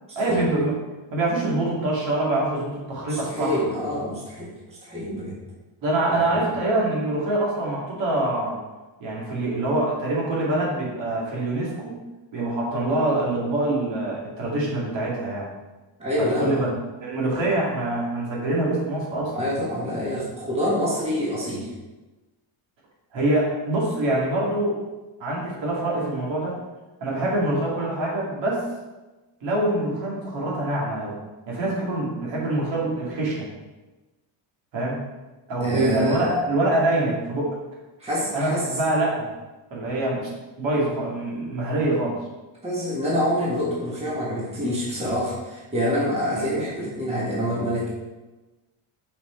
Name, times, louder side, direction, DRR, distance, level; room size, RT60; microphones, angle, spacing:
voice 1, 0.2-0.7 1.1-3.6 5.8-8.6 9.0-12.0 12.3-15.5 16.2-16.7 17.0-19.4 23.1-24.8 25.2-26.6 27.0-28.6 29.4-31.1 31.5-33.5 34.7-35.0 35.5-37.6 38.3-39.3 39.7-40.3 40.6-42.2, right 2 dB, 65° right, -4 dB, 2.4 m, -25 dB
voice 2, 3.1-4.5 4.8-5.4 6.1-6.2 16.0-16.7 19.3-21.7 35.6-36.4 38.0-38.7 42.6-47.9, equal, 15° right, -6 dB, 1.5 m, -26 dB
5.8 x 5.2 x 4.4 m, 1.1 s
cardioid pair, 165°, 47 cm